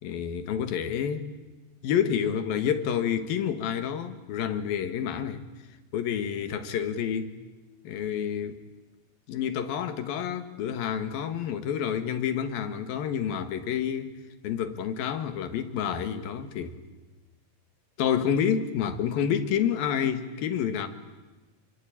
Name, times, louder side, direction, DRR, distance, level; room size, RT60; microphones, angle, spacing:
voice 1, 0.0-1.3 1.8-5.4 5.9-7.3 7.8-8.6 9.3-14.2 14.4-16.8 18.0-20.9, left 8 dB, 80° left, 3.4 m, -29 dB
28.5 x 23.0 x 8.7 m
omnidirectional pair, 4.2 m